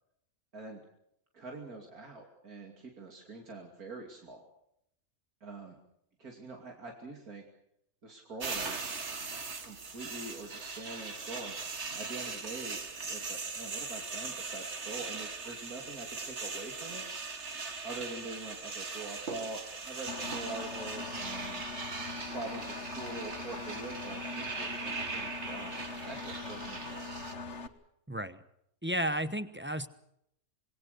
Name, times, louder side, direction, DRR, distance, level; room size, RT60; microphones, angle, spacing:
voice 1, 1.3-4.5 5.4-5.8 6.2-7.4 8.0-8.8 9.6-11.6 11.9-17.1 17.8-21.7 22.2-27.3, right 3 dB, 85° right, 1 dB, 3.3 m, -44 dB
sound 1, 8.4-27.3, right 4 dB, 50° right, 2.0 m, -40 dB
Engine, 20.1-27.7, left 3 dB, 50° left, 1.6 m, -42 dB
voice 2, 28.1-28.4 28.8-29.9, equal, 10° right, 11 dB, 0.8 m, -33 dB
27.0 x 20.5 x 6.7 m, 0.77 s
omnidirectional pair, 1.5 m